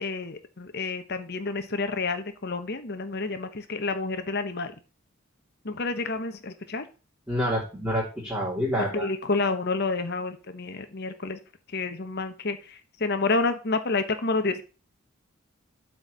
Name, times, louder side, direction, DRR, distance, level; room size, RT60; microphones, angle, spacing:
voice 1, 0.0-4.7 5.6-6.8 8.9-11.4 11.7-14.6, left 3 dB, 55° left, 9 dB, 1.1 m, -29 dB
voice 2, 7.3-9.1, equal, 10° right, -8 dB, 3.3 m, -27 dB
8.0 x 4.6 x 6.8 m, 0.34 s
head